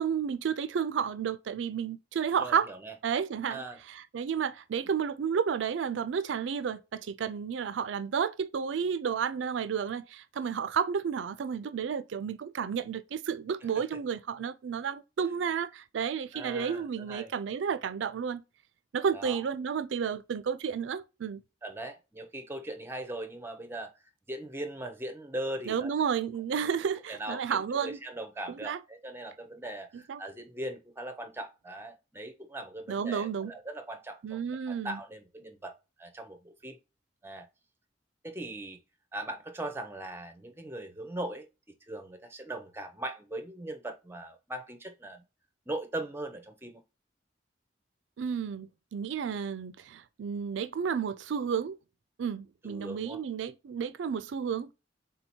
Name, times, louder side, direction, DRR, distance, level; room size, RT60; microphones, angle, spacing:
voice 1, 0.0-2.7 3.0-18.4 18.9-21.4 25.7-28.0 28.5-28.8 29.9-30.2 32.9-33.5 34.2-35.0 48.2-51.8 52.2-54.7, right 7 dB, 85° right, 0.4 m, -32 dB
voice 2, 2.4-2.9 3.5-3.8 16.3-17.3 19.1-19.4 21.6-23.9 24.3-25.9 27.1-34.4 34.7-36.8 37.2-37.5 38.2-38.8 39.1-45.2 45.7-46.8 52.6-53.2, right 1 dB, 10° right, 0.6 m, -40 dB
3.8 x 2.8 x 4.3 m
head